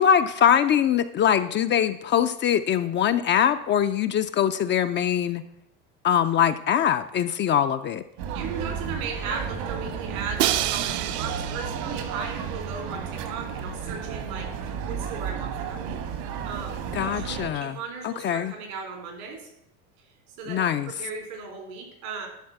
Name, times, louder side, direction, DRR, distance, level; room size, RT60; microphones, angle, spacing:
voice 1, 0.0-5.4 6.0-8.0 16.9-17.8 18.0-18.5 20.5-20.9, left 9 dB, 30° left, 9 dB, 0.4 m, -22 dB
sound 1, 8.2-17.5, right 7 dB, 65° right, 1.5 m, -33 dB
voice 2, 8.3-19.5 20.3-22.3, right 5 dB, 80° right, 3 dB, 3.9 m, -37 dB
Crash cymbal, 10.4-12.4, right 13 dB, 45° right, 0.6 m, -28 dB
11.5 x 4.0 x 7.6 m, 0.78 s
supercardioid pair, 115°, 42 cm